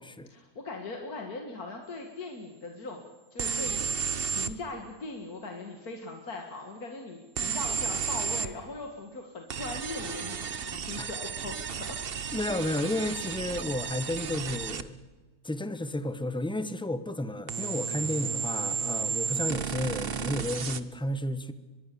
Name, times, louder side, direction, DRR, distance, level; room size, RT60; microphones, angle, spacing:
voice 1, 0.3-12.0, left 3 dB, 60° left, 3 dB, 2.4 m, -40 dB
sound 1, 3.4-4.6 7.4-8.5 9.5-14.9 17.5-20.8, right 6 dB, 40° right, 0.9 m, -33 dB
voice 2, 12.3-15.0 15.4-21.5, left 1 dB, 5° left, 12 dB, 0.8 m, -32 dB
23.5 x 22.0 x 7.0 m, 1.3 s
omnidirectional pair, 1.8 m